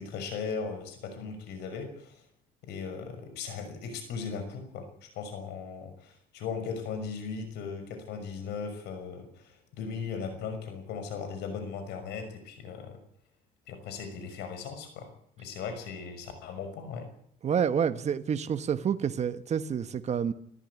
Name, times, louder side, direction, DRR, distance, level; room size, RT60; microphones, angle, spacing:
voice 1, 0.0-2.2 2.6-13.0 13.7-15.1 15.4-17.1, left 5 dB, 80° left, 6.1 m, -38 dB
voice 2, 17.4-20.3, right 7 dB, 40° right, 1.3 m, -28 dB
25.5 x 14.0 x 8.5 m
cardioid pair, 110°, 17 cm